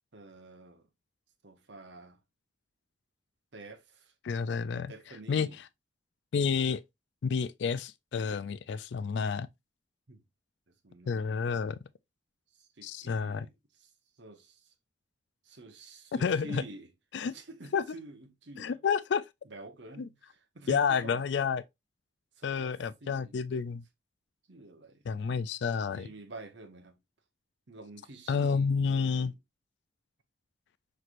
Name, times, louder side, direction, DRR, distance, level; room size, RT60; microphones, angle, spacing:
voice 1, 0.1-0.8 1.4-2.2 3.5-4.1 4.7-5.6 10.1-10.2 10.8-11.2 12.5-13.5 13.8-13.9 14.2-14.7 15.4-16.9 17.2-18.8 19.4-21.3 22.4-23.4 24.5-25.0 25.8-27.0 27.7-29.3, right 2 dB, 65° right, 0.9 m, -48 dB
voice 2, 4.2-4.9 5.3-5.7 6.3-6.8 7.2-9.5 11.1-11.8 12.8-13.5 16.1-16.6 17.1-17.3 17.7-17.8 18.6-19.2 20.0-20.1 20.7-21.6 22.4-23.8 25.1-26.1 28.3-29.3, left 6 dB, 65° left, 0.3 m, -30 dB
5.8 x 3.2 x 2.5 m
head